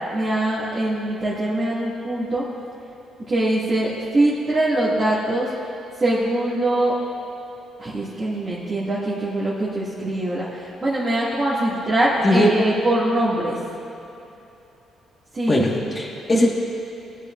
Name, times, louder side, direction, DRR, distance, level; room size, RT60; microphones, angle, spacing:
voice 1, 0.1-2.4 3.3-5.5 6.0-6.9 7.8-13.6 15.3-15.9, right 1 dB, 35° right, -10 dB, 2.1 m, -23 dB
voice 2, 12.2-12.6 15.5-16.5, left 1 dB, 30° left, -2 dB, 1.5 m, -19 dB
19.5 x 8.2 x 2.5 m, 2.9 s
cardioid pair, 90°, 0 cm